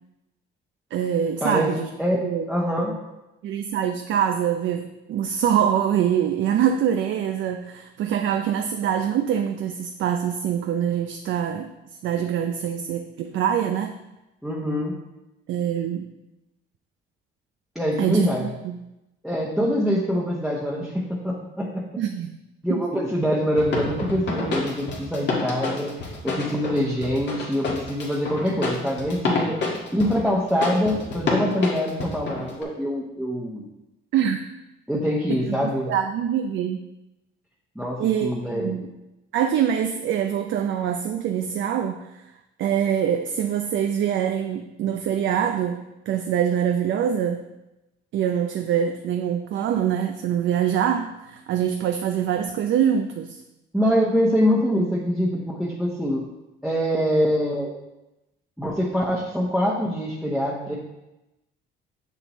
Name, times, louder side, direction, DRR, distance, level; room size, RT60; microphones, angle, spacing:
voice 1, 0.9-1.9 2.2-2.5 3.4-11.7 12.0-13.9 15.5-16.1 18.0-18.7 22.0-22.4 22.7-22.8 34.1-34.4 35.3-36.8 38.0-38.9 39.3-42.3 42.6-47.4 48.1-53.4, right 9 dB, 65° right, 5 dB, 0.5 m, -24 dB
voice 2, 1.4-1.7 2.0-3.0 14.4-15.0 17.7-18.5 19.2-21.9 22.6-33.7 34.9-35.9 37.7-38.8 53.7-56.2 56.6-57.7 58.6-60.7, equal, ahead, -3 dB, 1.0 m, -24 dB
sound 1, 23.6-32.6, left 3 dB, 60° left, 1.8 m, -28 dB
6.8 x 6.7 x 3.1 m, 0.96 s
cardioid pair, 90°, 21 cm